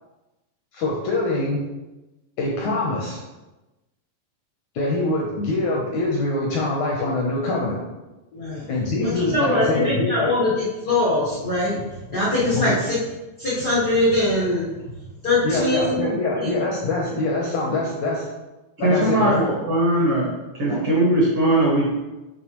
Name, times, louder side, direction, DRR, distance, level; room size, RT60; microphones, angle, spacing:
voice 1, 0.7-1.6 2.4-3.2 4.8-7.8 8.7-10.3 12.5-12.7 15.4-18.3 18.8-19.6, left 2 dB, 75° left, -2 dB, 1.7 m, -24 dB
voice 2, 8.3-8.7 9.0-11.8 12.1-13.0 13.4-14.7 15.2-15.9 16.3-16.6, left 1 dB, 90° left, -8 dB, 0.8 m, -22 dB
voice 3, 18.8-20.3 20.6-21.9, right 1 dB, 55° right, -5 dB, 1.6 m, -19 dB
8.4 x 3.8 x 3.0 m, 1.1 s
omnidirectional pair, 4.1 m